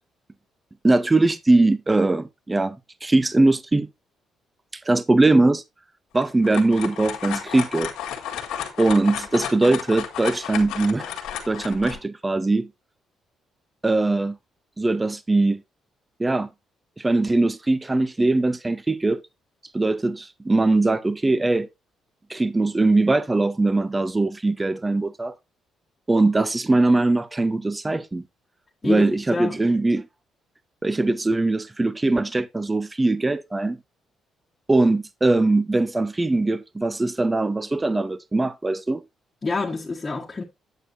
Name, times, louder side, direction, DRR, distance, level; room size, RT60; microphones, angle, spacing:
voice 1, 0.8-3.9 4.9-5.6 6.1-7.9 8.8-11.1 11.5-12.7 13.8-14.4 14.8-15.6 16.2-16.5 17.0-19.2 19.7-21.7 22.3-25.3 26.1-28.2 28.8-30.1 30.8-33.8 34.7-39.0, right 2 dB, 20° right, 0.6 m, -21 dB
sound 1, 6.1-12.0, left 9 dB, 90° left, 1.8 m, -32 dB
voice 2, 28.8-29.5 39.4-40.4, left 3 dB, 30° left, 1.4 m, -27 dB
9.2 x 8.5 x 2.6 m
cardioid pair, 90°, 0 cm